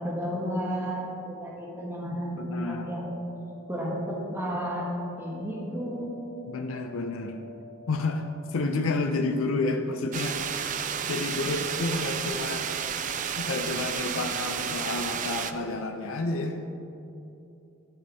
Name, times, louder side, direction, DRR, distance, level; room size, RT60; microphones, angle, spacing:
voice 1, 0.0-3.1 3.7-4.9 5.2-6.1 10.5-10.6, equal, 10° right, -4 dB, 1.4 m, -32 dB
voice 2, 2.1-2.9 6.5-7.4 7.9-8.3 8.5-10.8 11.1-12.8 13.3-16.6, left 3 dB, 75° left, 5 dB, 0.6 m, -30 dB
sound 1, 3.0-8.4, left 4 dB, 70° right, 0.7 m, -49 dB
sound 2, 10.1-15.5, right 8 dB, 35° right, 0.3 m, -31 dB
12.5 x 5.5 x 4.1 m, 2.8 s
head